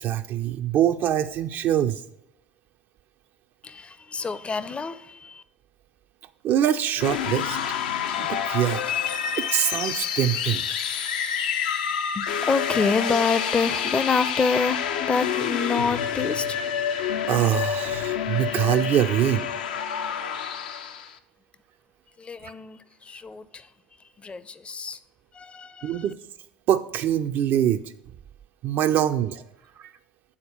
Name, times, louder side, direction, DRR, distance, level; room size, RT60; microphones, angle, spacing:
voice 1, 0.0-2.0 6.4-7.6 8.2-8.8 9.4-10.6 17.3-19.5 22.4-22.5 25.8-26.2 26.7-27.9 28.6-29.4 29.8-29.9, right 10 dB, 45° right, 7 dB, 0.4 m, -24 dB
voice 2, 3.6-5.4 12.1-16.7 22.2-23.7 24.0-25.0 25.3-26.1, left 5 dB, 20° left, 15 dB, 0.5 m, -27 dB
sound 1, 7.0-21.1, left 8 dB, 70° left, 0.5 m, -28 dB
8.6 x 4.1 x 6.4 m, 0.81 s
figure-of-eight pair, 65°, 5 cm